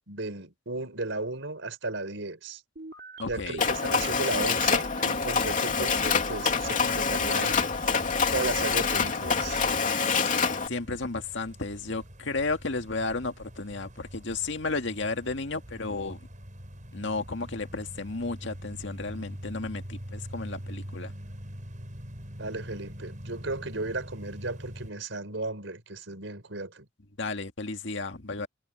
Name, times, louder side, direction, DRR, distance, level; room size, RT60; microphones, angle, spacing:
voice 1, 0.1-2.6 3.3-7.9 8.3-9.7 22.4-26.9, right 2 dB, 80° right, 4.6 m, -35 dB
sound 1, 2.8-9.9, right 1 dB, 60° right, 2.6 m, -43 dB
voice 2, 3.2-3.6 10.0-10.4 10.7-16.2 16.9-21.1 27.2-28.5, left 3 dB, 70° left, 2.0 m, -33 dB
Mechanisms, 3.6-10.7, left 5 dB, 45° left, 2.9 m, -26 dB
sound 2, 6.4-24.9, equal, 45° right, 7.4 m, -44 dB
head